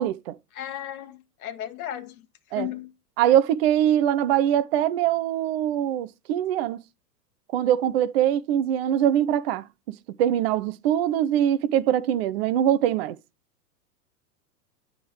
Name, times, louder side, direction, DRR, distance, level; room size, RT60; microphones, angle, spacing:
voice 1, 0.0-0.4 2.5-2.7 3.2-6.8 7.5-13.2, right 11 dB, 40° right, 0.5 m, -23 dB
voice 2, 0.5-2.9, left 12 dB, 60° left, 1.1 m, -35 dB
9.5 x 3.6 x 4.7 m
figure-of-eight pair, 100°, 48 cm